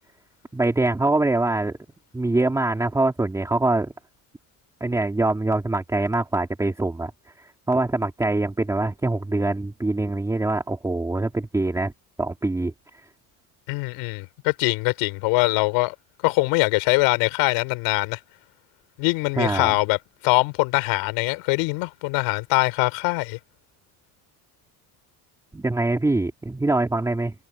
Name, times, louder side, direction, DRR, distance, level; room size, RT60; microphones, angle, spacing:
voice 1, 0.5-1.8 2.1-3.9 4.8-7.1 7.7-11.9 12.2-12.7 19.4-19.7 25.5-27.3, right 2 dB, 5° right, 2.8 m, -23 dB
voice 2, 13.7-16.0 16.2-18.2 19.0-20.0 20.2-23.4, left 25 dB, 85° left, 3.6 m, -22 dB
cardioid pair, 165°, 41 cm